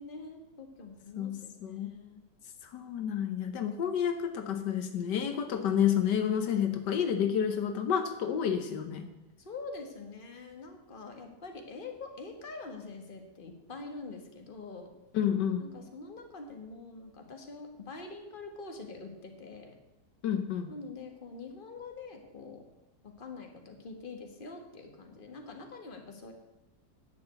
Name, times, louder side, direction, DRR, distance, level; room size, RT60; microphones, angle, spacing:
voice 1, 0.0-2.2 9.4-14.9 15.6-19.7 20.7-22.6 23.2-26.3, left 3 dB, 30° left, 3 dB, 1.7 m, -45 dB
voice 2, 1.2-1.9 2.6-9.1 15.1-15.7 20.2-20.7, left 8 dB, 80° left, 7 dB, 1.5 m, -30 dB
10.5 x 7.0 x 8.2 m, 0.96 s
omnidirectional pair, 1.8 m